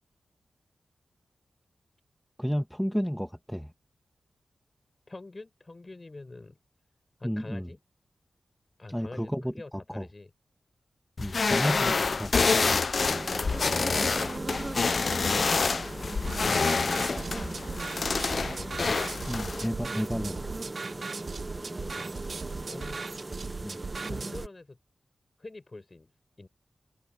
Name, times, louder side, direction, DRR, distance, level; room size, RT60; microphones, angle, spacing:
voice 1, 2.4-3.7 7.2-7.7 8.9-9.5 9.9-10.1 11.2-12.3 19.3-20.6 23.6-23.8, equal, ahead, 1.8 m, -31 dB
voice 2, 5.1-6.6 7.2-7.8 8.8-10.3 13.3-14.3 15.0-16.2 16.4-17.9 21.8-23.0 24.0-24.8 25.4-26.1 26.4-26.5, left 2 dB, 35° left, 5.3 m, -45 dB
sound 1, 11.2-19.7, left 4 dB, 60° left, 0.7 m, -27 dB
sound 2, 13.0-24.5, right 2 dB, 35° right, 1.3 m, -38 dB
sound 3, 16.3-24.5, right 4 dB, 65° right, 2.7 m, -38 dB
cardioid pair, 50°, 0 cm